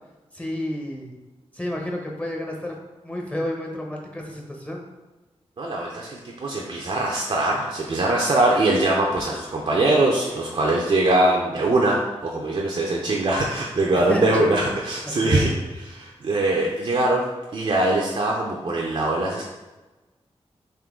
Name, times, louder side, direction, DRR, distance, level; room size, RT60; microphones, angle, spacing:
voice 1, 0.3-1.1 1.5-2.8 3.0-4.8 13.9-14.6 15.0-15.5, left 1 dB, 10° left, 0 dB, 0.7 m, -30 dB
voice 2, 5.6-15.5 15.9-17.2 17.5-19.4, right 2 dB, 55° right, -2 dB, 0.5 m, -22 dB
3.7 x 2.6 x 3.6 m, 1.1 s
cardioid pair, 65°, 11 cm